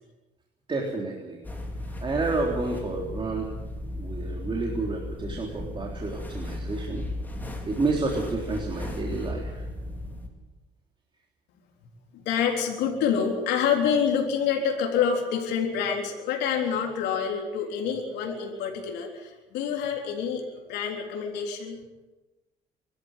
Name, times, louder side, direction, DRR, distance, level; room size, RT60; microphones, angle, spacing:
voice 1, 0.7-1.4 2.0-3.5 3.9-7.0 7.7-9.6, right 3 dB, 30° right, -1 dB, 3.6 m, -30 dB
sound 1, 1.4-10.3, left 1 dB, 10° left, 4.6 m, -35 dB
voice 2, 12.1-20.4 20.7-21.8, left 7 dB, 90° left, 1 dB, 3.8 m, -27 dB
24.5 x 13.5 x 9.1 m, 1.1 s
cardioid pair, 110°, 17 cm